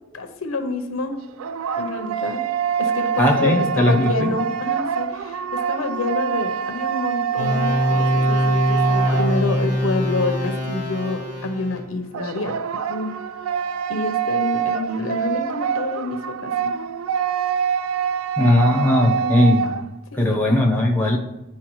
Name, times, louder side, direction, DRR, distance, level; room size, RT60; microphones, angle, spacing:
voice 1, 0.1-1.2 1.7-2.4 2.8-12.6 12.9-13.2 13.9-16.8 19.2-19.5 20.1-20.5, left 2 dB, 80° left, 7 dB, 0.8 m, -27 dB
sound 1, 1.1-9.8 12.1-19.9, right 8 dB, 80° right, 0.3 m, -25 dB
voice 2, 3.2-4.3 18.4-19.7 20.2-21.2, left 1 dB, 10° left, 1 dB, 0.8 m, -18 dB
sound 2, 7.4-11.8, left 1 dB, 35° right, 1.7 m, -22 dB
10.5 x 4.5 x 3.1 m, 0.97 s
head